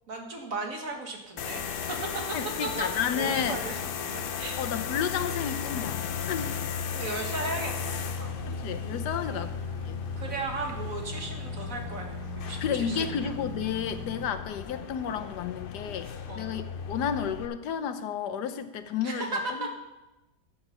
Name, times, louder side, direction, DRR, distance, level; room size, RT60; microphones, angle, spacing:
voice 1, 0.1-2.2 2.6-2.8 3.1-4.6 6.9-8.4 9.3-9.5 10.2-13.3 16.3-16.6 19.0-19.7, right 3 dB, 55° right, 2 dB, 1.9 m, -36 dB
sound 1, 1.4-17.5, left 7 dB, 70° left, 0.5 m, -35 dB
voice 2, 2.3-3.6 4.6-6.6 8.5-9.5 9.9-10.0 12.6-19.7, left 8 dB, 85° left, 9 dB, 1.4 m, -32 dB
sound 2, 7.4-14.3, right 4 dB, 25° right, 1.1 m, -43 dB
13.0 x 7.1 x 5.6 m, 1.0 s
omnidirectional pair, 1.7 m